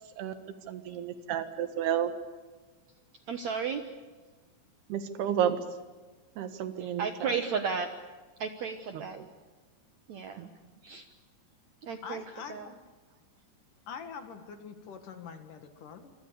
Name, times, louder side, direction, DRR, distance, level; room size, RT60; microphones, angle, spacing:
voice 1, 0.7-2.1 4.9-5.6 6.4-7.3 10.4-10.5, right 9 dB, 80° right, 9 dB, 3.6 m, -31 dB
voice 2, 3.3-3.8 6.8-7.9 8.4-9.2 10.1-10.5 10.8-11.0 11.8-12.2 12.5-12.7, right 6 dB, 65° right, 7 dB, 1.9 m, -33 dB
voice 3, 12.0-12.8 13.9-16.1, left 6 dB, 60° left, 8 dB, 3.2 m, -44 dB
26.0 x 25.5 x 6.9 m, 1.3 s
omnidirectional pair, 4.6 m